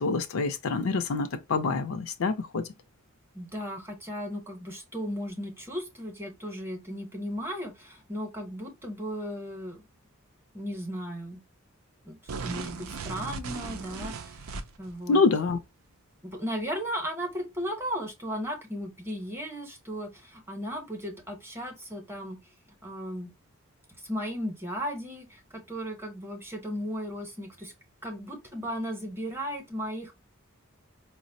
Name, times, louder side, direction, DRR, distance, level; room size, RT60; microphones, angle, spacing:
voice 1, 0.0-2.7 15.1-15.6, left 4 dB, 75° left, 0.5 m, -26 dB
voice 2, 3.3-9.8 10.5-11.4 12.1-14.4 14.8-15.2 16.2-22.4 22.8-23.3 24.1-27.7 28.0-30.1, equal, 10° right, 0.7 m, -36 dB
sound 1, 12.3-14.9, right 4 dB, 85° right, 0.5 m, -37 dB
4.6 x 2.0 x 2.6 m
head